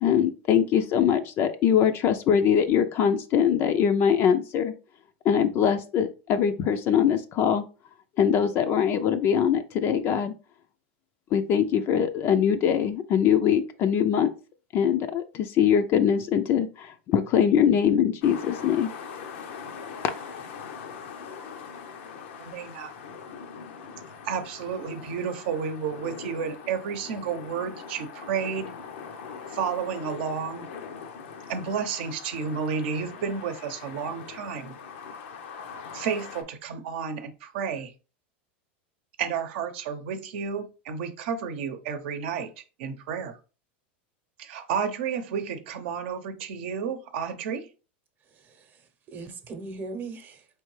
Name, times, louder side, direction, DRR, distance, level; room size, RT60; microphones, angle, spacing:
voice 1, 0.0-4.7 5.2-7.6 8.2-10.3 11.3-14.3 14.7-18.9, left 8 dB, 40° left, 0.4 m, -22 dB
sound 1, 18.2-36.4, left 6 dB, 75° left, 0.7 m, -42 dB
voice 2, 22.4-22.9 24.2-28.7 29.5-30.7 31.5-34.8 35.9-37.9 39.2-42.5 42.8-43.4 44.4-47.7, right 6 dB, 70° right, 0.7 m, -31 dB
voice 3, 48.3-50.5, right 3 dB, 30° right, 0.8 m, -40 dB
4.4 x 3.3 x 3.2 m
supercardioid pair, 125°, 6 cm